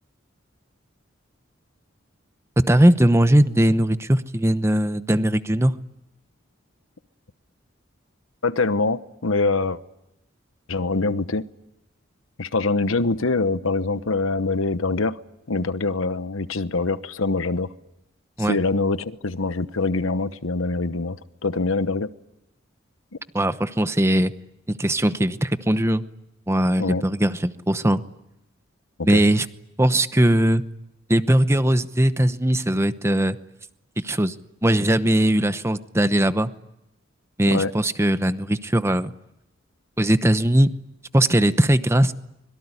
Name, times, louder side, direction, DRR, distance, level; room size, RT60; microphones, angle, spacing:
voice 1, 2.7-5.7 18.4-18.6 23.3-24.3 24.7-26.0 26.5-28.0 29.0-29.5 29.8-30.6 31.1-33.4 34.0-34.3 34.6-36.5 37.4-39.1 40.0-40.7 41.1-42.1, right 1 dB, 15° right, 11 dB, 0.9 m, -19 dB
voice 2, 8.4-9.8 10.7-11.4 12.4-15.2 15.5-17.7 18.4-21.2 21.4-22.1 26.8-27.0 29.0-29.2 37.5-37.7, left 3 dB, 85° left, 13 dB, 1.1 m, -24 dB
25.0 x 22.5 x 9.9 m, 0.87 s
head